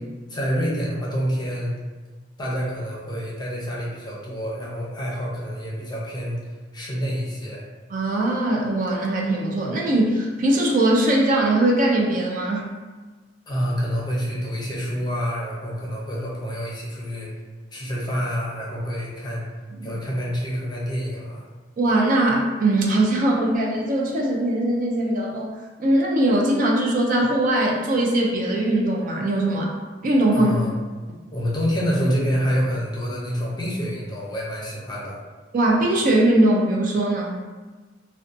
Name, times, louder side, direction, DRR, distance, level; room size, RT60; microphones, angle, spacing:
voice 1, 0.3-1.8 2.4-6.4 6.7-7.6 13.5-17.3 17.7-19.4 19.8-21.4 30.3-30.8 31.3-35.2, equal, 25° left, -5 dB, 0.6 m, -27 dB
voice 2, 7.9-12.7 19.8-19.9 21.8-29.7 30.0-30.5 35.5-37.3, right 1 dB, 45° right, -1 dB, 0.4 m, -21 dB
2.6 x 2.2 x 2.5 m, 1.3 s
head